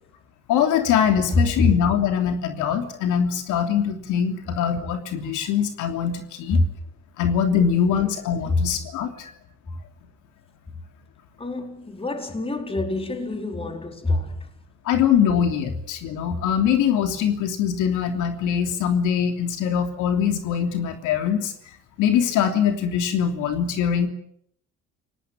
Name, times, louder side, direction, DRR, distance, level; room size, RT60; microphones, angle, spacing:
voice 1, 0.5-6.6 7.2-9.3 14.8-21.5 22.0-24.1, left 8 dB, 85° left, 3.2 m, -22 dB
voice 2, 11.4-14.4, left 2 dB, 20° left, 4.4 m, -25 dB
29.5 x 18.5 x 7.6 m
cardioid pair, 95°, 30 cm